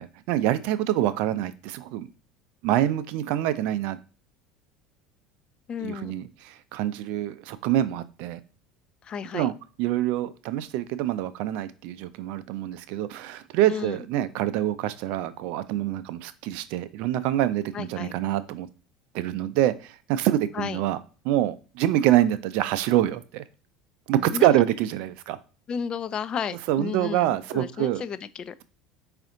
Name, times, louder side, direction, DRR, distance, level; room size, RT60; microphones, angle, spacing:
voice 1, 0.0-2.1 2.6-4.0 5.8-8.4 9.3-9.5 9.8-18.7 19.1-21.0 21.2-23.4 24.1-25.4 26.7-28.0, right 13 dB, 55° right, 0.4 m, -26 dB
voice 2, 5.7-6.1 9.0-9.5 13.7-14.0 17.7-18.1 20.5-20.8 24.1-24.6 25.7-28.5, left 7 dB, 30° left, 0.3 m, -33 dB
4.9 x 2.5 x 3.7 m
figure-of-eight pair, 65°, 3 cm